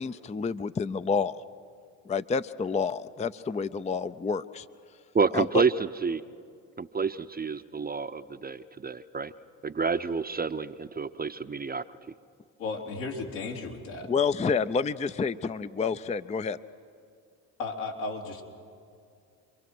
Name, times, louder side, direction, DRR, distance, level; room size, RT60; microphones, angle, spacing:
voice 1, 0.0-1.3 2.1-4.7 5.3-5.6 14.1-16.6, left 5 dB, 15° left, 13 dB, 0.5 m, -29 dB
voice 2, 5.1-5.7 6.0-6.2 6.8-9.3 9.6-11.8, right 5 dB, 20° right, 10 dB, 0.7 m, -29 dB
voice 3, 12.6-14.1 17.6-18.4, left 3 dB, 80° left, -2 dB, 3.6 m, -34 dB
28.5 x 23.0 x 6.2 m, 2.4 s
hypercardioid pair, 65°, 43 cm